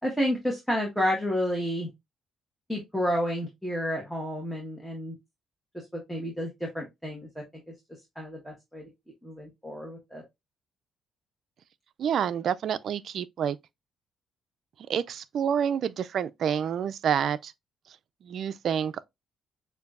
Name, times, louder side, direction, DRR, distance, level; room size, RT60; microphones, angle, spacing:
voice 1, 0.0-1.9 2.7-5.1 5.9-7.4 8.1-8.8 9.2-10.2, equal, ahead, 1.3 m, -30 dB
voice 2, 12.0-13.6 14.9-17.5 18.2-19.1, right 8 dB, 65° right, 0.3 m, -28 dB
6.6 x 2.6 x 2.5 m
cardioid pair, 90°, 0 cm